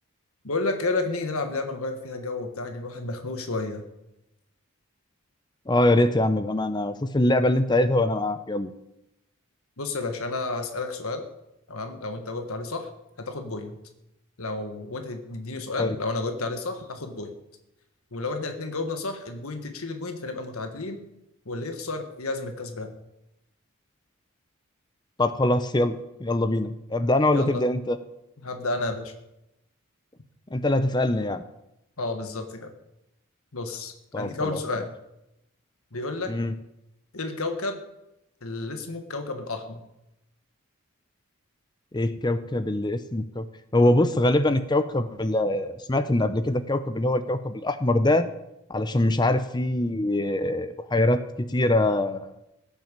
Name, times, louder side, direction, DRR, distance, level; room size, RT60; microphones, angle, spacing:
voice 1, 0.4-3.8 9.8-11.2 11.7-12.9 13.2-13.8 14.4-17.3 18.1-21.0 21.4-22.9 27.3-27.6 28.4-29.1 32.0-32.7 33.5-34.9 35.9-36.3 37.1-37.8 38.4-39.8, left 3 dB, 75° left, 6 dB, 1.5 m, -31 dB
voice 2, 5.7-8.7 15.8-16.0 25.2-28.0 30.5-31.4 34.1-34.6 36.3-36.5 41.9-43.5 43.7-48.3 48.7-52.3, left 1 dB, 20° left, 11 dB, 0.6 m, -23 dB
16.0 x 9.0 x 7.4 m, 0.88 s
head